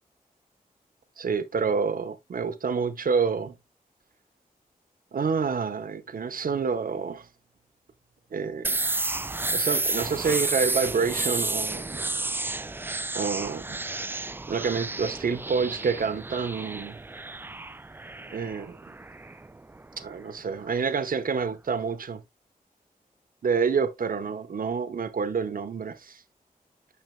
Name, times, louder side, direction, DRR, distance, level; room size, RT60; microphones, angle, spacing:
voice 1, 1.2-3.5 5.1-7.3 8.3-8.8 9.5-12.0 13.1-13.8 14.5-17.0 18.3-18.9 20.0-22.2 23.4-26.2, right 5 dB, 70° right, 1.0 m, -28 dB
sound 1, 8.6-20.3, right 2 dB, 15° right, 0.3 m, -31 dB
9.3 x 6.3 x 2.3 m
wide cardioid pair, 95°, 15 cm